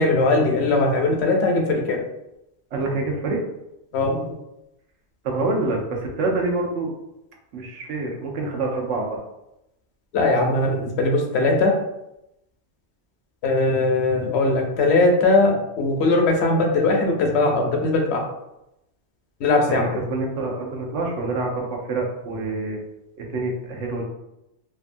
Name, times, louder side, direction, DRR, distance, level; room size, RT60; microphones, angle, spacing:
voice 1, 0.0-2.0 3.9-4.3 10.1-11.8 13.4-18.2 19.4-19.9, left 2 dB, 70° left, 2 dB, 0.8 m, -20 dB
voice 2, 2.7-3.4 5.2-6.9 7.5-9.2 19.7-22.8 23.2-24.0, right 3 dB, 90° right, 0 dB, 0.9 m, -26 dB
2.7 x 2.3 x 2.5 m, 0.88 s
omnidirectional pair, 1.2 m